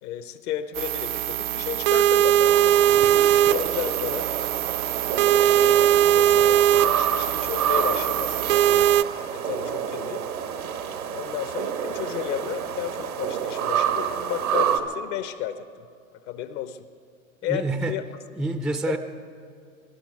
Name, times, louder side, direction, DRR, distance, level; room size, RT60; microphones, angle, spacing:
voice 1, 0.0-4.3 5.0-8.9 9.3-10.3 11.1-16.8 17.4-18.0 18.9-19.0, left 11 dB, 55° left, 10 dB, 1.0 m, -33 dB
sound 1, 0.7-9.0, right 12 dB, 60° right, 0.6 m, -20 dB
sound 2, 2.4-14.8, right 8 dB, 90° right, 1.6 m, -29 dB
voice 2, 17.5-18.0 18.3-19.0, right 2 dB, ahead, 9 dB, 0.5 m, -27 dB
23.0 x 12.0 x 4.8 m, 2.4 s
hypercardioid pair, 110°, 42 cm